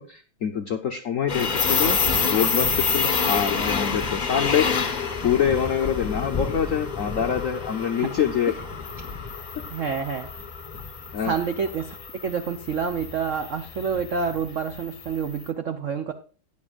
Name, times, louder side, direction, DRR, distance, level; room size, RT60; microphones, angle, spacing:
voice 1, 0.0-8.5 11.1-11.3, left 8 dB, 80° left, 6 dB, 0.7 m, -25 dB
sound 1, 1.3-15.3, left 5 dB, 40° left, 0.6 m, -28 dB
voice 2, 9.7-10.3 11.2-12.0 12.2-16.1, right 6 dB, 90° right, 7 dB, 0.6 m, -28 dB
14.0 x 9.6 x 2.5 m, 0.37 s
omnidirectional pair, 2.4 m